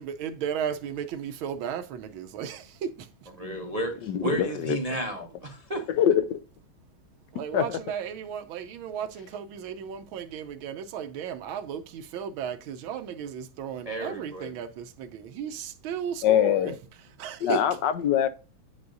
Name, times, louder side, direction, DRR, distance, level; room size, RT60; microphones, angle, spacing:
voice 1, 0.0-3.3 7.3-16.8 17.2-17.7, right 8 dB, 75° right, 1.4 m, -35 dB
voice 2, 3.4-5.8 13.8-14.5, right 1 dB, 45° right, 0.4 m, -32 dB
voice 3, 4.1-4.8 5.9-6.4 7.5-7.8 16.2-16.7 17.4-18.3, left 10 dB, 70° left, 1.2 m, -23 dB
9.5 x 5.2 x 2.5 m
omnidirectional pair, 2.3 m